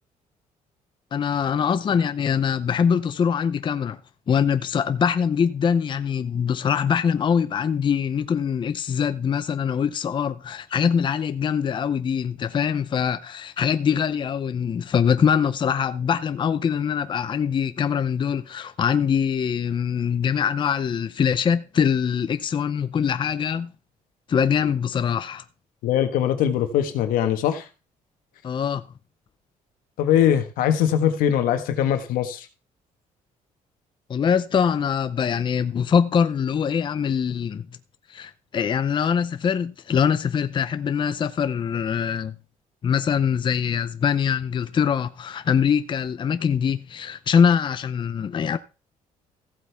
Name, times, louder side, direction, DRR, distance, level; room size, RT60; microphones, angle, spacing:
voice 1, 1.1-4.0 4.3-23.7 24.3-25.4 28.4-28.9 34.1-37.7 38.1-42.4 42.8-48.6, left 7 dB, 35° left, 0.6 m, -23 dB
voice 2, 25.8-27.7 30.0-32.5, left 10 dB, 85° left, 1.5 m, -21 dB
15.0 x 8.1 x 3.5 m
cardioid pair, 115°, 14 cm